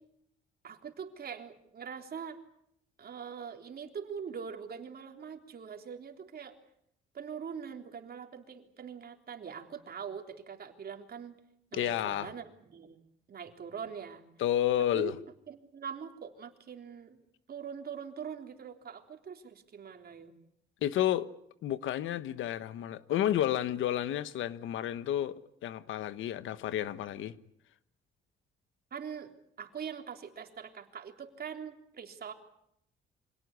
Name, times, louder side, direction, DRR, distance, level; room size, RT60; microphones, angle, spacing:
voice 1, 0.6-2.4 3.0-6.5 7.1-11.4 11.7-13.0 13.3-14.3 14.9-15.1 15.5-17.2 17.5-20.4 28.9-29.3 29.6-32.3, right 7 dB, 50° right, 3.6 m, -43 dB
voice 2, 11.7-12.3 14.4-15.2 20.8-21.3 21.6-27.4, left 11 dB, 80° left, 1.2 m, -31 dB
25.5 x 18.0 x 9.7 m
cardioid pair, 90°, 20 cm